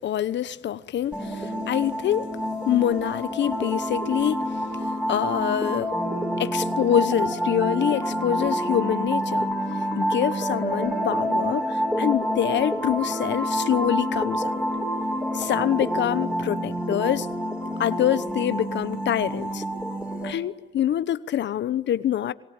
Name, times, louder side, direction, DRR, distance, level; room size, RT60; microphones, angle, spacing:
voice 1, 0.0-2.3 2.6-4.5 5.1-5.9 6.4-9.5 10.0-14.7 15.3-17.3 17.8-19.6 20.2-22.3, left 11 dB, 65° left, 1.0 m, -25 dB
sound 1, 1.1-20.3, equal, 5° right, 7.0 m, -28 dB
25.5 x 23.0 x 8.9 m
cardioid pair, 90°, 20 cm